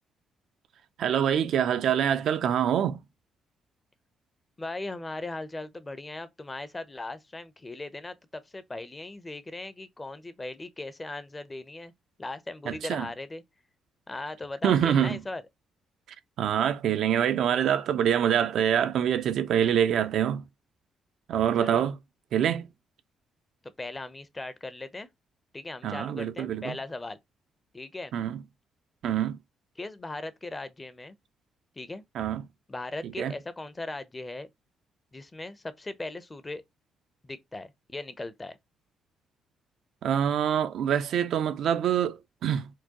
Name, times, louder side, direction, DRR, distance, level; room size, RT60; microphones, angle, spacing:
voice 1, 1.0-3.0 12.7-13.1 14.6-15.2 16.4-20.4 21.3-21.9 22.3-22.7 25.8-26.8 28.1-28.4 29.0-29.4 32.1-32.4 33.0-33.3 40.0-42.7, right 9 dB, 75° right, 0.4 m, -25 dB
voice 2, 4.6-11.9 12.2-13.4 14.1-15.4 21.6-21.9 23.8-25.1 25.5-27.2 27.7-28.1 29.8-31.2 31.8-32.0 32.7-34.5 35.1-36.6 37.2-38.6, left 2 dB, 20° left, 0.6 m, -38 dB
4.5 x 2.2 x 2.9 m
cardioid pair, 90°, 0 cm